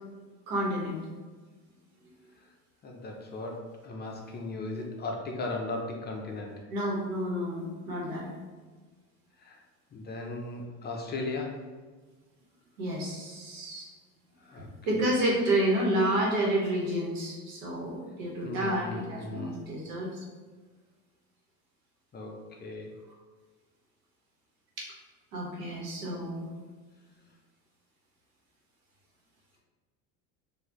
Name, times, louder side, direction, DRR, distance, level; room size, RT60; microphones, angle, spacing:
voice 1, 0.5-1.0 6.7-8.3 12.8-13.9 14.5-20.2 24.8-24.9 25.3-26.5, right 1 dB, 85° right, -3 dB, 1.5 m, -30 dB
voice 2, 2.8-6.5 9.4-9.6 9.9-11.5 14.4-14.7 14.9-15.0 18.4-19.6 22.1-22.9, left 2 dB, 25° left, 1 dB, 0.6 m, -37 dB
4.5 x 2.7 x 2.9 m, 1.4 s
supercardioid pair, 115°, 40 cm